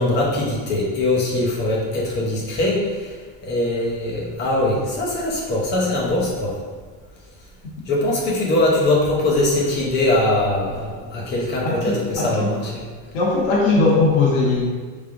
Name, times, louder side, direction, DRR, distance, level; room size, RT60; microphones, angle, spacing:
voice 1, 0.0-3.1 3.4-6.6 7.9-12.8, left 1 dB, 30° left, -3 dB, 0.6 m, -21 dB
voice 2, 11.6-12.5 13.1-14.7, left 3 dB, 80° left, -4 dB, 1.0 m, -19 dB
3.6 x 3.2 x 2.4 m, 1.5 s
cardioid pair, 180°, 38 cm